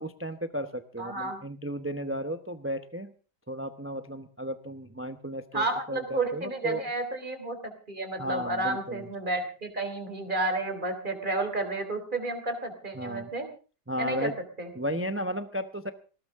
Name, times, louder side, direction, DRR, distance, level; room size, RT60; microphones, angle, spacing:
voice 1, 0.0-3.1 3.5-6.9 8.2-9.1 12.9-13.3 13.9-14.3 14.7-15.9, equal, 10° right, 8 dB, 0.8 m, -34 dB
voice 2, 1.0-1.4 5.5-7.6 7.9-13.5 14.0-14.3 14.6-14.7, right 2 dB, 30° right, 5 dB, 3.6 m, -31 dB
19.0 x 19.0 x 3.7 m, 0.38 s
omnidirectional pair, 1.8 m